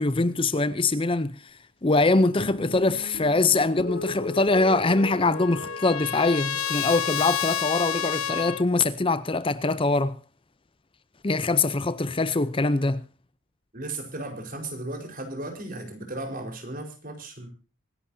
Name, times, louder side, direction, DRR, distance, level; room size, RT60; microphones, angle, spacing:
voice 1, 0.0-10.2 11.2-13.0, left 3 dB, 25° left, 0.6 m, -23 dB
sound 1, 2.4-9.0, left 1 dB, 55° left, 3.0 m, -39 dB
Trumpet, 4.8-8.6, left 9 dB, 85° left, 1.0 m, -30 dB
voice 2, 13.7-17.5, right 2 dB, 40° right, 4.5 m, -35 dB
25.0 x 11.0 x 2.7 m
head